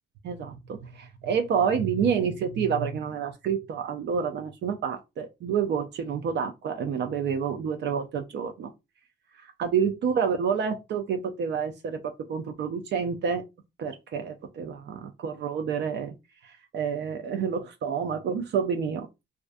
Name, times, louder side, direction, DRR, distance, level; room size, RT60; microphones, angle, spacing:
voice 1, 0.2-8.7 9.4-13.4 13.8-16.1 16.4-19.1, right 7 dB, 60° right, 0.4 m, -28 dB
2.4 x 2.2 x 2.4 m
cardioid pair, 90°, 20 cm